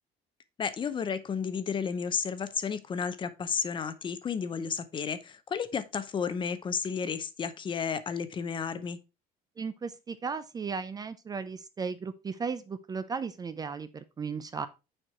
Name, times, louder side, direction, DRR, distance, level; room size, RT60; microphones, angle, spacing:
voice 1, 0.6-9.0, left 6 dB, 30° left, 0.7 m, -32 dB
voice 2, 9.6-14.7, right 5 dB, 25° right, 0.5 m, -35 dB
6.5 x 4.6 x 4.4 m
cardioid pair, 140°, 16 cm